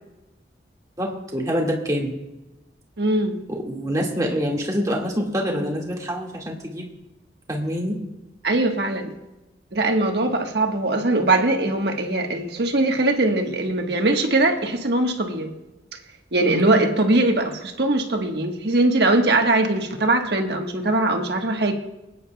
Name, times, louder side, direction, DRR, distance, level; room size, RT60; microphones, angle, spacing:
voice 1, 1.0-2.1 3.5-6.9 7.5-8.0 16.4-16.8, equal, 20° right, -2 dB, 1.9 m, -26 dB
voice 2, 3.0-3.4 8.4-9.1 9.7-15.5 16.3-21.7, right 2 dB, 65° right, 3 dB, 1.3 m, -21 dB
28.0 x 9.4 x 2.3 m, 0.99 s
head